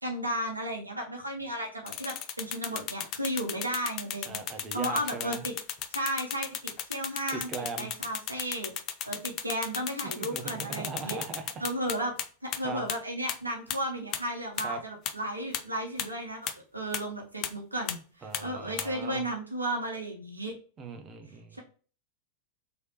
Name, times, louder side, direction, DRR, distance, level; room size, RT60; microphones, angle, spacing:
voice 1, 0.0-5.5 5.9-7.5 7.8-8.7 9.1-11.2 11.6-12.1 12.4-20.5 21.5-21.6, right 1 dB, 85° right, 0.8 m, -34 dB
sound 1, 1.9-12.2 12.5-12.6 12.9-13.0 13.3-13.4 13.7-13.8 14.1-14.2 14.6-14.7 15.1-15.2 15.5-15.6 16.0-16.1 16.5-16.6 16.9-17.0 17.4-17.5 17.9-18.0 18.3-18.4 18.8-18.9, left 10 dB, 35° left, 0.4 m, -33 dB
voice 2, 4.3-5.4 7.3-7.9 10.2-11.5 12.6-12.8 14.6-14.8 18.2-19.2 20.8-21.6, right 4 dB, 25° right, 0.7 m, -39 dB
3.2 x 3.0 x 2.7 m
figure-of-eight pair, 90°, 0 cm